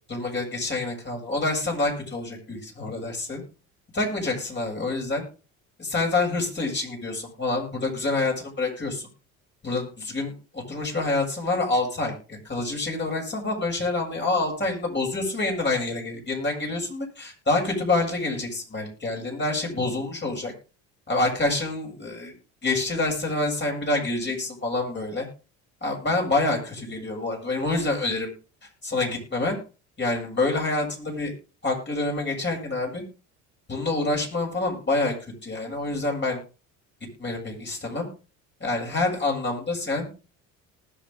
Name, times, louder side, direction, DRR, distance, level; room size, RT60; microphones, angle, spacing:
voice 1, 0.1-3.4 3.9-5.2 5.8-9.1 9.6-20.5 21.1-22.3 22.6-25.3 25.8-28.3 28.8-29.6 30.0-31.3 31.6-33.0 33.7-36.4 37.2-38.1 38.6-40.1, left 2 dB, 25° left, 0 dB, 7.7 m, -27 dB
19.5 x 7.0 x 3.7 m, 0.34 s
hypercardioid pair, 75°, 39 cm